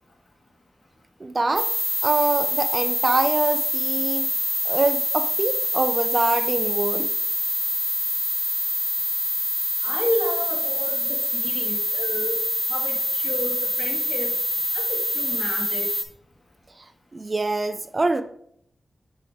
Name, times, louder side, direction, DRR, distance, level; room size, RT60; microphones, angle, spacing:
voice 1, 1.2-1.7 2.0-4.3 4.6-7.1 17.1-18.2, right 2 dB, 30° right, 9 dB, 0.3 m, -24 dB
sound 1, 1.6-16.0, left 1 dB, 15° left, 0.9 m, -25 dB
voice 2, 9.8-12.4 12.7-14.3 14.7-15.9, left 1 dB, 50° left, 0 dB, 1.5 m, -31 dB
6.2 x 4.6 x 3.4 m, 0.67 s
wide cardioid pair, 105°, 0 cm